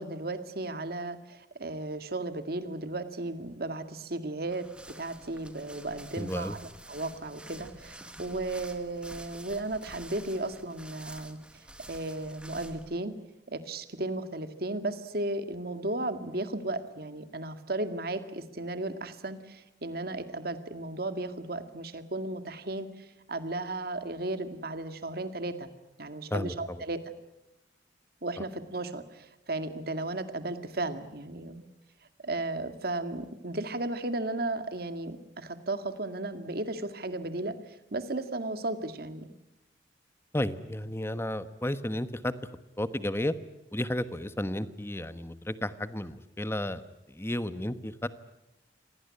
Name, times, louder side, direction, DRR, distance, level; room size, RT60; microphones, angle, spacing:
voice 1, 0.0-4.7 5.0-13.1 13.5-25.7 26.0-27.0 28.2-31.7 32.2-39.3, right 2 dB, 60° right, 10 dB, 2.0 m, -35 dB
sound 1, 4.4-13.0, right 1 dB, 5° right, 1.6 m, -49 dB
voice 2, 6.2-6.6 26.3-26.8 40.3-42.3 42.8-43.3 43.7-46.8 47.1-48.1, left 1 dB, 15° left, 13 dB, 1.1 m, -32 dB
26.0 x 18.5 x 9.9 m, 0.94 s
head